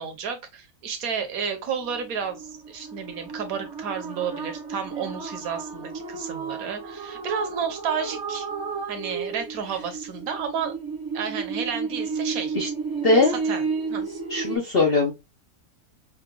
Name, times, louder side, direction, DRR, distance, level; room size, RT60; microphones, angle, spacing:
voice 1, 0.0-8.5 8.9-10.8 11.1-12.6 13.1-14.1, right 6 dB, 60° right, 1.1 m, -31 dB
sound 1, 1.8-14.6, right 5 dB, 35° right, 0.3 m, -32 dB
voice 2, 13.0-13.3 14.3-15.1, left 3 dB, 80° left, 0.5 m, -20 dB
5.7 x 2.2 x 2.2 m
omnidirectional pair, 1.8 m